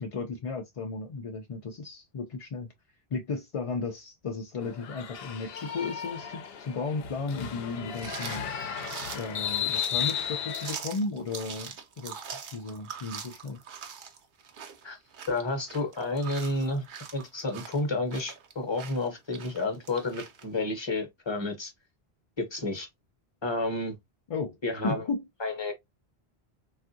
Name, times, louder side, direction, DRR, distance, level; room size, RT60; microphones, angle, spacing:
voice 1, 0.0-2.7 3.1-8.4 9.1-12.2 12.5-13.6 24.3-24.6 24.8-25.2, left 4 dB, 50° left, 0.4 m, -34 dB
sound 1, 4.6-10.7, left 9 dB, 75° left, 0.8 m, -34 dB
sound 2, 7.9-20.5, right 6 dB, 60° right, 0.7 m, -43 dB
voice 2, 15.3-16.8 17.1-21.7 22.4-22.9 23.4-24.0 24.6-25.0 25.4-25.7, left 2 dB, 30° left, 0.8 m, -30 dB
3.4 x 2.4 x 2.5 m
omnidirectional pair, 1.1 m